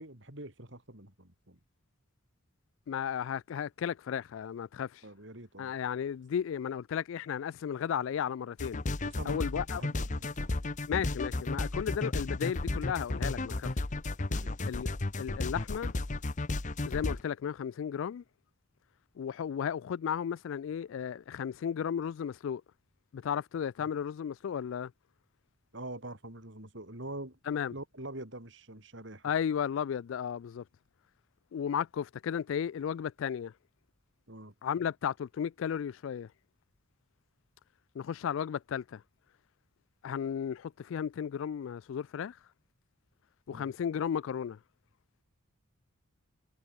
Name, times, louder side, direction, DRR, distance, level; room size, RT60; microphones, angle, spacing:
voice 1, 0.0-1.6 5.0-5.7 9.0-9.4 9.7-10.5 14.3-14.5 25.7-27.4 27.7-29.3 34.3-34.5 43.5-43.7, right 1 dB, 60° right, 4.8 m, -45 dB
voice 2, 2.9-5.0 5.6-8.8 9.3-9.8 10.9-13.7 14.7-15.9 16.8-18.2 19.2-22.6 23.1-24.9 27.5-27.7 29.2-30.6 31.5-33.5 34.6-36.3 37.9-39.0 40.0-42.4 43.5-44.6, left 8 dB, 65° left, 0.3 m, -34 dB
sound 1, 8.6-17.2, left 2 dB, 35° left, 0.9 m, -33 dB
head